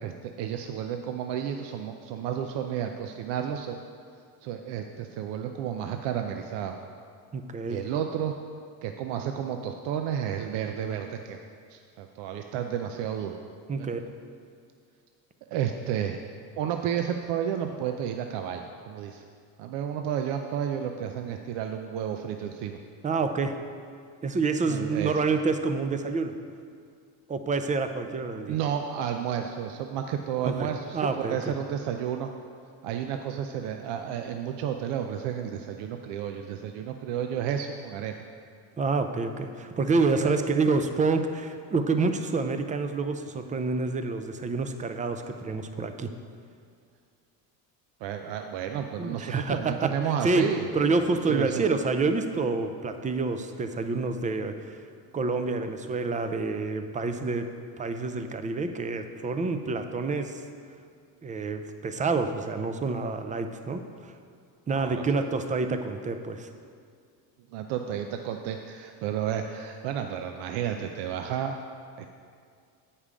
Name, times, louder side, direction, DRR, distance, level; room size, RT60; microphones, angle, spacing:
voice 1, 0.0-3.8 4.4-6.8 7.7-8.3 8.8-11.4 11.7-13.4 13.8-13.9 15.5-16.2 16.6-19.2 19.6-22.8 24.7-25.1 28.5-32.3 32.8-38.1 40.2-40.4 48.0-50.7 51.3-51.6 64.7-65.3 67.5-71.6 72.0-72.1, right 9 dB, 70° right, 5 dB, 0.6 m, -31 dB
voice 2, 7.3-7.8 13.7-14.0 23.0-23.6 24.2-26.3 27.3-28.6 30.4-31.5 38.8-46.1 49.0-49.9 50.2-54.8 55.1-57.5 57.8-60.4 61.2-63.8 64.7-66.5, right 3 dB, 20° right, 8 dB, 0.4 m, -28 dB
8.3 x 5.5 x 4.9 m, 2.2 s
cardioid pair, 105°, 44 cm